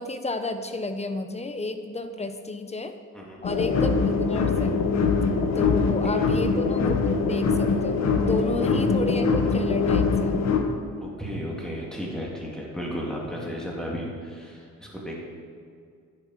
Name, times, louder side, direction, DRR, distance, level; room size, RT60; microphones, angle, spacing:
voice 1, 0.0-3.0 3.4-4.8 5.5-10.4, left 2 dB, 20° left, 8 dB, 0.8 m, -31 dB
sound 1, 3.4-10.6, left 4 dB, 60° left, 1.4 m, -23 dB
voice 2, 11.0-15.2, equal, ahead, -4 dB, 3.1 m, -34 dB
11.0 x 7.4 x 5.9 m, 2.2 s
cardioid pair, 90°, 30 cm